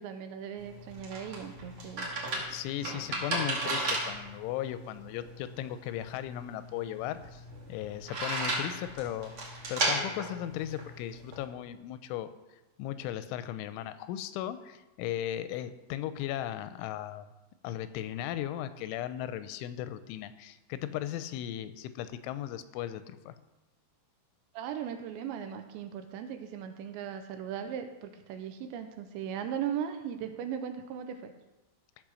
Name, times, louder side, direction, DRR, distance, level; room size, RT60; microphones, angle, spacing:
voice 1, 0.0-2.1 2.8-3.2 24.5-31.3, right 8 dB, 80° right, 7 dB, 2.9 m, -38 dB
sound 1, 0.6-11.4, right 2 dB, 45° right, 1.7 m, -35 dB
voice 2, 2.3-7.4 7.7-9.3 9.7-12.3 12.8-17.3 17.6-23.3, left 12 dB, 85° left, 12 dB, 3.1 m, -37 dB
14.5 x 5.1 x 6.3 m, 1.0 s
omnidirectional pair, 5.4 m